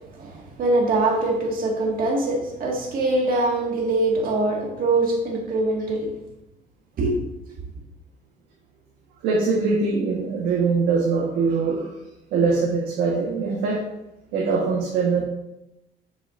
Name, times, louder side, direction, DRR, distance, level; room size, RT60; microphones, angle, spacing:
voice 1, 0.2-6.0 7.0-7.3, right 2 dB, 55° right, -1 dB, 1.9 m, -23 dB
voice 2, 9.2-11.9 12.3-13.8 14.3-15.2, right 4 dB, 90° right, -3 dB, 1.4 m, -22 dB
6.9 x 6.7 x 2.6 m, 0.89 s
cardioid pair, 110°, 17 cm